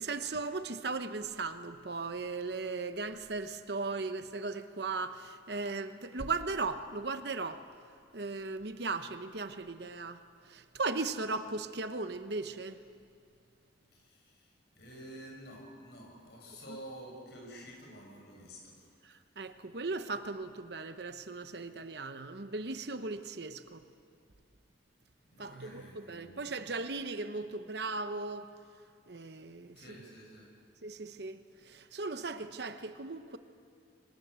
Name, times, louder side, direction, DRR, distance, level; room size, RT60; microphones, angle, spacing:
voice 1, 0.0-7.6 8.1-12.8 19.0-23.8 25.4-28.5 29.1-29.8 30.8-33.4, right 3 dB, 60° right, 1.0 m, -37 dB
voice 2, 13.9-18.9 25.3-26.6 29.8-30.5, equal, 60° left, 6.9 m, -50 dB
25.0 x 18.5 x 8.1 m
head